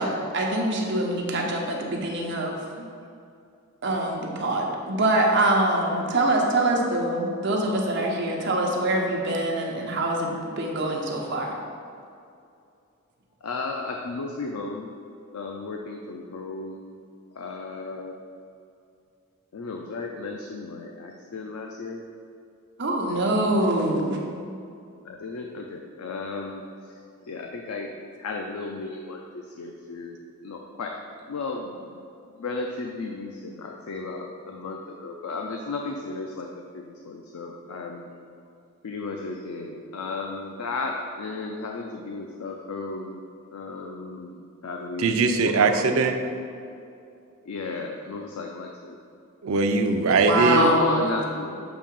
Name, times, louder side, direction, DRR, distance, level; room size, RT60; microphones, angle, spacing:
voice 1, 0.0-2.8 3.8-11.6 22.8-24.2 50.1-51.0, right 1 dB, 55° right, 0 dB, 0.8 m, -24 dB
voice 2, 13.4-14.9 15.3-17.0 17.4-18.2 19.5-22.0 25.0-26.6 27.2-27.9 28.2-31.0 31.3-31.9 32.4-38.1 38.8-43.2 43.5-45.8 47.5-49.0 50.5-51.6, left 3 dB, 90° left, 2 dB, 0.4 m, -34 dB
voice 3, 45.0-46.2 49.4-50.7, right 4 dB, 75° right, 6 dB, 0.4 m, -21 dB
6.9 x 2.8 x 5.2 m, 2.5 s
head